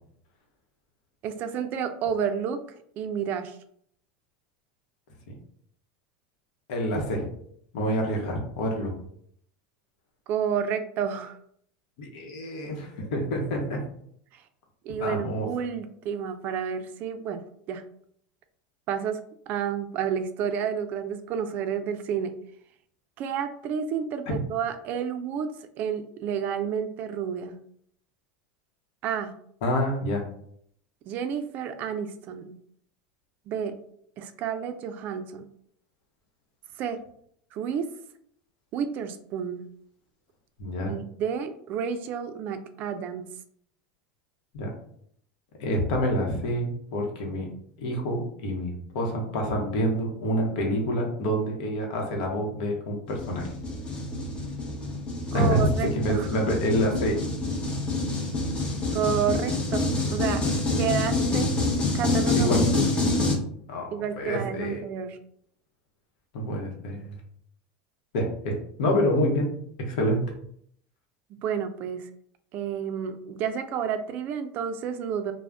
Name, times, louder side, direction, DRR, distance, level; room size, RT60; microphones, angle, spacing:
voice 1, 1.2-2.6 3.0-3.6 10.3-11.4 14.3-14.4 14.8-17.4 17.7-17.8 18.9-19.2 19.5-22.4 23.2-27.5 29.0-29.3 31.0-32.5 33.5-33.7 34.2-35.4 36.8-37.0 37.5-37.9 38.7-39.7 40.9-43.3 55.3-56.3 58.9-60.4 60.8-61.6 61.9-62.9 63.9-65.2 71.4-72.1 72.5-75.3, right 7 dB, 45° right, 9 dB, 0.4 m, -30 dB
voice 2, 6.7-7.3 7.7-8.9 12.0-13.8 15.0-15.5 29.6-30.2 40.6-40.9 44.5-44.7 45.6-47.5 47.8-53.5 55.3-57.2 62.3-62.6 63.7-64.8 66.3-67.2 68.1-69.5 69.8-70.2, equal, 75° left, 1 dB, 0.8 m, -27 dB
sound 1, 53.1-63.4, left 2 dB, 25° left, 0.7 m, -27 dB
2.4 x 2.1 x 3.3 m, 0.66 s
supercardioid pair, 115°, 4 cm